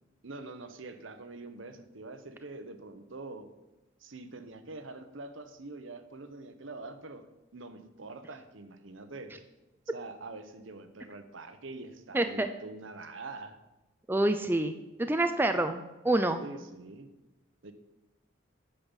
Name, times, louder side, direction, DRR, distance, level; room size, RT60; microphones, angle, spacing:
voice 1, 0.2-3.5 4.0-7.3 7.5-9.3 9.9-13.6 16.4-17.1 17.6-17.7, right 3 dB, 75° right, 9 dB, 0.9 m, -45 dB
voice 2, 12.1-12.5 14.1-16.4, right 1 dB, 10° right, 7 dB, 0.4 m, -27 dB
8.9 x 5.6 x 7.2 m, 1.0 s
head